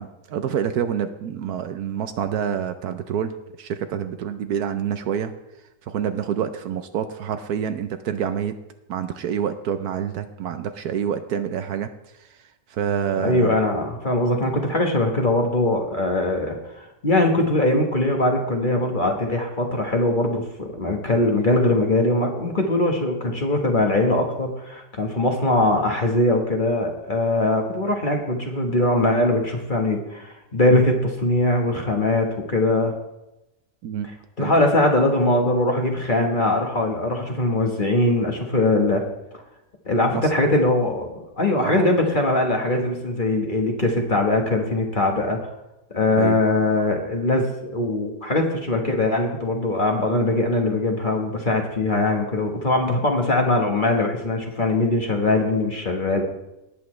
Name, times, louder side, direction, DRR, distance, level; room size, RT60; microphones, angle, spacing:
voice 1, 0.0-3.3 3.6-5.3 5.9-8.5 8.9-11.9 12.2-12.4 12.7-13.6 33.8-34.1 34.4-34.5 40.1-40.3 41.6-41.9 46.2-46.4, right 8 dB, 70° right, 9 dB, 1.1 m, -27 dB
voice 2, 13.2-32.9 34.4-39.0 39.8-45.4 45.9-47.5 47.7-56.2, left 2 dB, 30° left, 2 dB, 1.3 m, -21 dB
18.5 x 8.2 x 3.2 m, 0.91 s
omnidirectional pair, 1.8 m